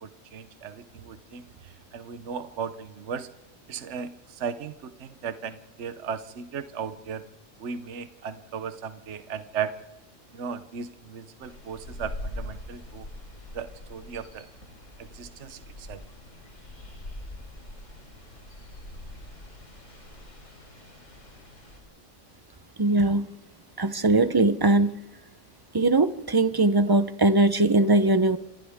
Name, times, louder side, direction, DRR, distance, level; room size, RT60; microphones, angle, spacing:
voice 1, 0.0-3.3 3.7-7.2 7.6-9.7 10.3-13.1 13.5-14.5 15.0-16.0, right 7 dB, 65° right, 10 dB, 1.2 m, -36 dB
sound 1, 11.4-21.8, left 1 dB, 75° left, 4.6 m, -43 dB
voice 2, 22.8-23.3 23.8-25.0 25.7-28.4, right 2 dB, 20° right, 12 dB, 0.7 m, -21 dB
29.0 x 26.0 x 3.6 m, 0.98 s
omnidirectional pair, 1.3 m